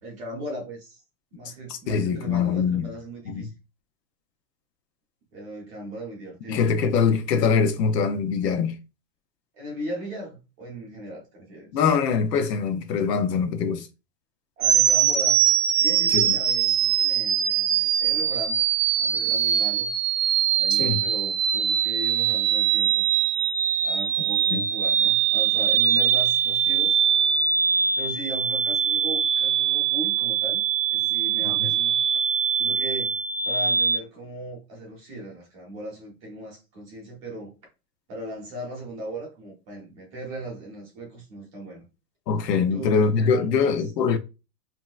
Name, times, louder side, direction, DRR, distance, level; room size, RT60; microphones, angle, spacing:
voice 1, 0.0-1.0 1.3-3.5 5.3-6.6 9.5-11.8 14.6-15.4 15.8-18.6 19.0-19.9 20.6-23.1 23.8-27.0 28.0-30.6 30.9-32.0 32.5-33.2 33.4-37.6 38.1-41.8 42.7-43.8, right 1 dB, 20° right, 0.7 m, -38 dB
voice 2, 1.7-2.9 3.3-3.5 6.5-8.7 11.7-13.9 16.1-16.3 20.7-21.0 24.5-24.6 31.4-31.7 42.3-44.2, left 6 dB, 85° left, 0.8 m, -23 dB
sound 1, 14.6-34.0, right 9 dB, 55° right, 0.5 m, -22 dB
3.2 x 2.8 x 2.3 m
supercardioid pair, 175°, 48 cm